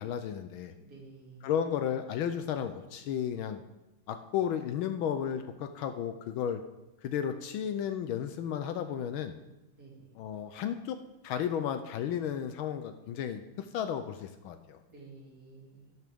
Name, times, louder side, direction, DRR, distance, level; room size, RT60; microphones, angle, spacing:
voice 1, 0.0-0.7 1.4-3.6 4.1-6.6 7.0-9.3 10.2-11.0 11.2-14.8, left 9 dB, 75° left, 9 dB, 1.3 m, -33 dB
voice 2, 0.8-1.5 9.7-10.1 14.9-16.0, right 3 dB, 45° right, -3 dB, 2.9 m, -52 dB
12.0 x 11.0 x 3.5 m, 1.0 s
omnidirectional pair, 2.4 m